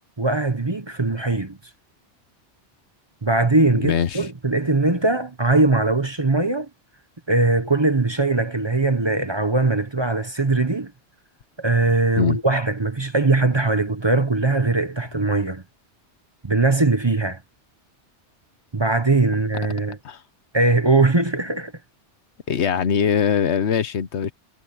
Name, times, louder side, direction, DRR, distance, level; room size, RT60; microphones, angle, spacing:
voice 1, 0.2-1.6 3.2-6.7 7.3-10.9 11.6-15.6 16.4-17.4 18.7-20.0 20.5-21.7, right 3 dB, 25° right, 1.0 m, -20 dB
voice 2, 3.7-4.3 12.2-12.4 20.0-20.2 22.5-24.3, left 7 dB, 75° left, 1.2 m, -22 dB
omnidirectional pair, 1.2 m